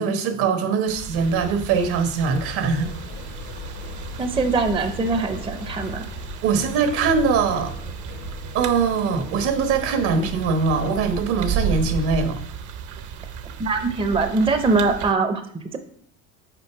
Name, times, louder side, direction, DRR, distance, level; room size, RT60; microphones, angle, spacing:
voice 1, 0.0-2.9 6.4-7.7 8.5-12.4, right 5 dB, 70° right, 1.3 m, -22 dB
sound 1, 0.9-15.1, right 6 dB, 50° right, 0.7 m, -33 dB
sound 2, 2.2-12.1, left 7 dB, 85° left, 1.1 m, -40 dB
voice 2, 4.2-6.0 13.6-15.8, right 3 dB, 15° right, 0.5 m, -22 dB
6.7 x 4.4 x 4.6 m
supercardioid pair, 105°, 39 cm